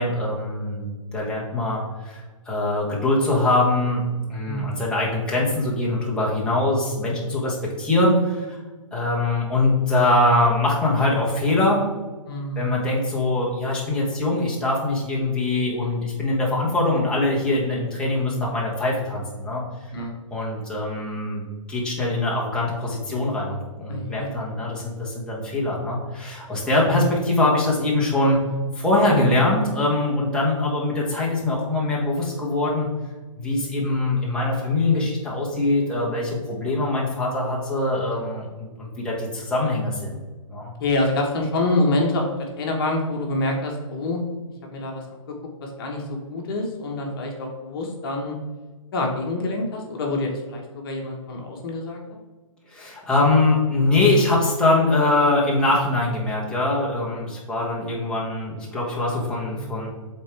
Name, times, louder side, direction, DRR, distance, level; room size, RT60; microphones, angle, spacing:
voice 1, 0.0-2.2 2.5-8.6 8.9-11.8 12.6-19.6 20.3-28.4 28.7-32.9 33.4-40.2 40.5-40.7 52.7-59.9, left 2 dB, 5° left, -5 dB, 1.1 m, -23 dB
voice 2, 4.5-4.8 12.3-12.7 19.9-20.1 23.9-24.3 26.9-27.0 29.0-29.4 40.8-42.3 42.6-44.2 44.7-45.0 45.6-48.4 48.9-52.0 59.5-59.9, left 2 dB, 40° left, 1 dB, 1.2 m, -26 dB
7.8 x 3.7 x 3.4 m, 1.3 s
hypercardioid pair, 150°, 18 cm